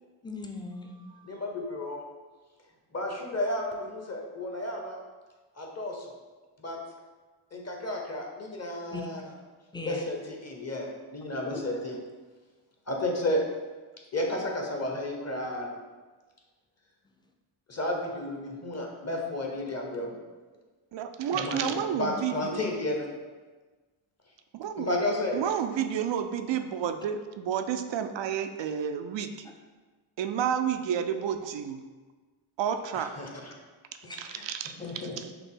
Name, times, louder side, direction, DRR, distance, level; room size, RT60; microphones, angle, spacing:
voice 1, 0.2-1.4 8.9-9.1 9.7-10.1 11.5-11.6 21.3-21.6 34.1-34.2 34.8-35.1, left 2 dB, 10° left, 2 dB, 0.5 m, -40 dB
voice 2, 1.3-2.0 2.9-5.0 5.6-6.1 6.6-6.8 7.5-9.2 9.9-12.0 12.9-13.4 14.1-15.7 17.7-20.2 21.3-21.7 22.0-23.1 24.8-25.4 32.9-33.5 34.2-35.2, left 1 dB, 30° left, 1 dB, 1.0 m, -32 dB
voice 3, 20.9-22.6 24.5-24.9 25.3-29.3 30.2-31.8 32.6-33.1 34.2-35.3, right 8 dB, 65° right, 8 dB, 0.5 m, -30 dB
5.8 x 2.0 x 3.6 m, 1.3 s
supercardioid pair, 45°, 49 cm